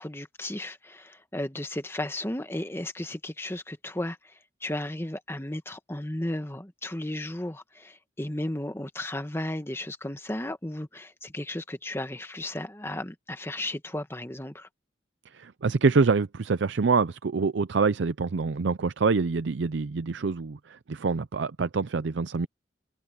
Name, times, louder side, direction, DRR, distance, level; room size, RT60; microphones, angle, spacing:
voice 1, 0.0-4.3 4.6-14.7, left 1 dB, 15° left, 1.3 m, -34 dB
voice 2, 15.3-22.5, right 4 dB, 75° right, 0.5 m, -26 dB
head